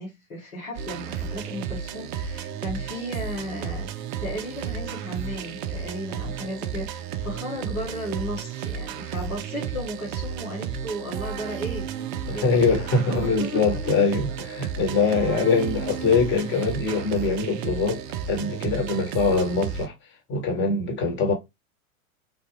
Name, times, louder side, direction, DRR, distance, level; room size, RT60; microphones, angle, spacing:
voice 1, 0.0-14.1 15.0-15.3, equal, 80° left, 1.6 m, -35 dB
sound 1, 0.8-19.9, right 7 dB, 40° right, 0.4 m, -33 dB
voice 2, 12.3-18.0 18.3-19.9 20.3-21.3, left 4 dB, 25° left, 1.1 m, -23 dB
3.4 x 2.3 x 2.9 m
hypercardioid pair, 95°, 42 cm